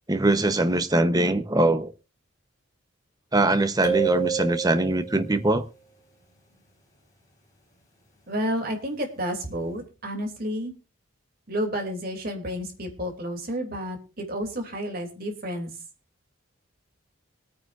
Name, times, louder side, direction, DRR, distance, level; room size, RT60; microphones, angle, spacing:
voice 1, 0.1-1.9 3.3-5.6, right 2 dB, 20° right, 1.0 m, -22 dB
sound 1, 3.8-5.3, right 8 dB, 15° left, 4.7 m, -28 dB
voice 2, 8.3-10.7 11.5-15.7, equal, 45° right, 3.1 m, -31 dB
24.5 x 9.4 x 2.6 m
head